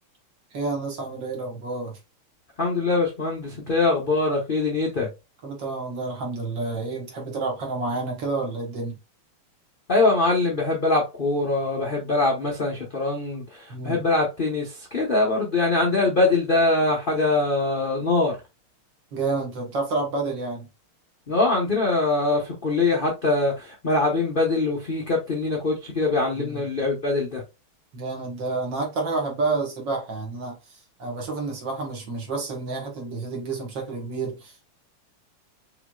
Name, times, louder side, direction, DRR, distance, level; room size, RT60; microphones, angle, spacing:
voice 1, 0.5-2.0 5.4-9.0 13.7-14.0 19.1-20.7 26.4-26.6 27.9-34.7, right 3 dB, 60° right, 2.0 m, -29 dB
voice 2, 2.6-5.1 9.9-18.4 21.3-27.4, left 3 dB, 45° left, 0.6 m, -23 dB
5.7 x 3.1 x 2.3 m
omnidirectional pair, 2.4 m